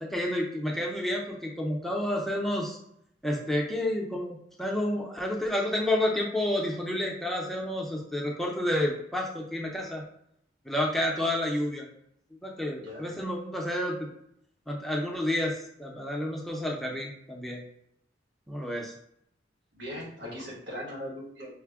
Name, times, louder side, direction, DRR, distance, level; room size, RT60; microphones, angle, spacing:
voice 1, 0.0-2.8 3.2-10.0 10.7-11.9 12.4-14.1 14.7-17.6 18.5-18.9 20.2-20.3, left 1 dB, ahead, -2 dB, 0.5 m, -30 dB
voice 2, 12.7-13.0 19.7-21.5, equal, 80° right, -4 dB, 1.7 m, -39 dB
5.6 x 2.1 x 3.5 m, 0.72 s
head